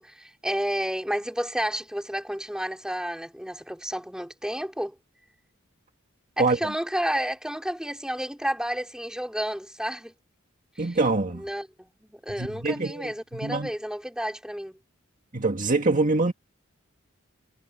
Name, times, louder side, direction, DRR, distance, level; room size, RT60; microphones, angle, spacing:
voice 1, 0.0-5.0 6.4-10.1 10.8-11.0 11.4-14.8, equal, 5° right, 4.5 m, -31 dB
voice 2, 10.8-11.4 12.4-13.7 15.3-16.3, right 3 dB, 40° right, 1.8 m, -25 dB
head